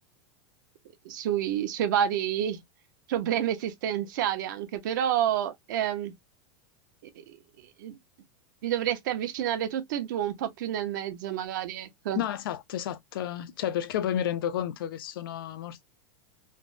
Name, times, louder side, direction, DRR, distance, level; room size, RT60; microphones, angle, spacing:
voice 1, 1.0-2.6 3.1-6.1 7.3-7.4 7.8-8.0 8.6-12.2, right 10 dB, 55° right, 0.6 m, -29 dB
voice 2, 12.1-15.8, left 10 dB, 65° left, 0.5 m, -31 dB
3.4 x 2.0 x 2.5 m
supercardioid pair, 175°, 13 cm